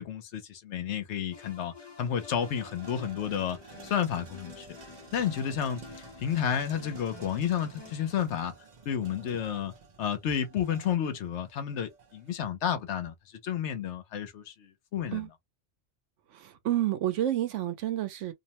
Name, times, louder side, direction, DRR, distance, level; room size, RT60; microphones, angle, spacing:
voice 1, 0.0-4.7 5.1-5.8 6.2-8.5 8.9-9.7 10.0-13.1 13.4-15.2, left 8 dB, 70° left, 0.9 m, -31 dB
sound 1, 1.3-8.1, left 4 dB, 25° left, 0.8 m, -49 dB
sound 2, 1.3-1.4 1.8-12.5, right 4 dB, 45° right, 0.6 m, -52 dB
voice 2, 16.3-18.3, right 13 dB, 85° right, 1.0 m, -29 dB
2.6 x 2.1 x 2.9 m
omnidirectional pair, 1.2 m